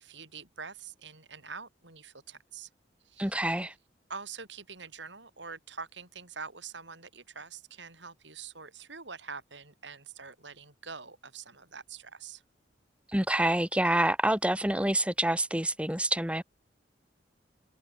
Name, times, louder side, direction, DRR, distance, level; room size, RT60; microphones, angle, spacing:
voice 1, 0.0-2.7 3.1-3.4 4.1-12.4, right 5 dB, 70° right, 5.6 m, -45 dB
voice 2, 3.2-3.7 13.1-16.4, right 1 dB, 5° right, 1.8 m, -27 dB
head